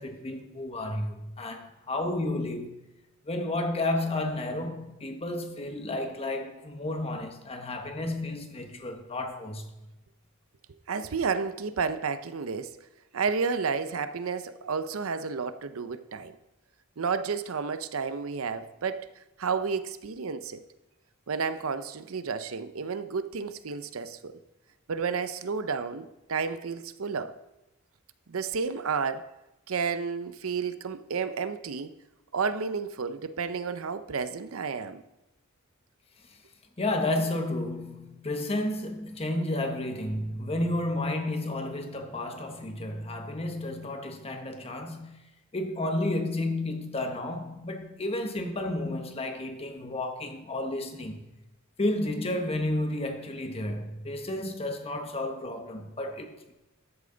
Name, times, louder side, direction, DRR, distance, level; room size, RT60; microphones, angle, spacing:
voice 1, 0.0-2.8 3.2-9.8 36.8-45.2 45.5-51.3 51.8-56.5, left 1 dB, 30° left, 1.2 m, -32 dB
voice 2, 10.9-12.8 13.1-16.4 17.0-19.1 19.4-20.6 21.3-24.4 24.9-27.4 28.3-29.3 29.7-31.9 32.3-35.0, right 5 dB, 75° right, 0.6 m, -31 dB
13.0 x 8.5 x 3.9 m
head